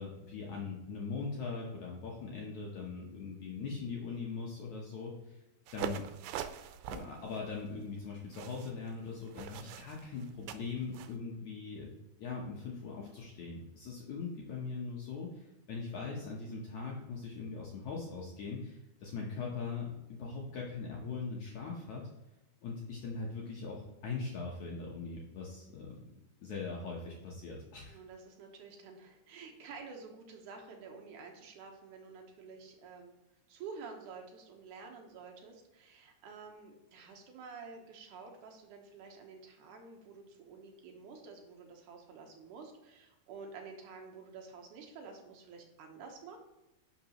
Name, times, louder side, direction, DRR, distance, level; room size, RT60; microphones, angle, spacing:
voice 1, 0.0-5.4 5.7-6.0 6.9-11.9 12.2-22.1 22.6-26.0 26.4-28.0, left 4 dB, 70° left, -3 dB, 1.9 m, -41 dB
sound 1, 5.7-11.2, right 10 dB, 85° right, 2.5 m, -44 dB
voice 2, 27.9-33.2 33.5-46.4, right 5 dB, 70° right, 2 dB, 2.1 m, -50 dB
11.0 x 5.9 x 3.0 m, 0.96 s
omnidirectional pair, 4.6 m